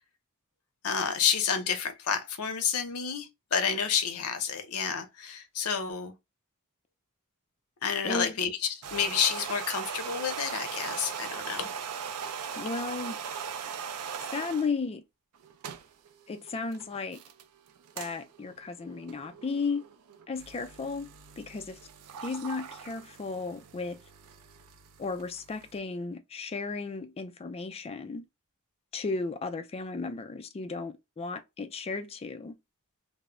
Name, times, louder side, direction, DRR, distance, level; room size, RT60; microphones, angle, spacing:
voice 1, 0.8-6.1 7.8-11.7, left 7 dB, 75° left, 0.6 m, -30 dB
voice 2, 8.0-8.3 12.6-13.2 14.3-15.0 16.3-17.2 18.0-19.8 20.3-21.1 21.4-21.8 22.2-24.0 25.0-28.3 28.9-32.5, left 4 dB, 25° left, 0.3 m, -34 dB
sound 1, 8.7-14.7 15.4-25.8, right 7 dB, 90° right, 0.4 m, -40 dB
2.1 x 2.0 x 3.5 m
head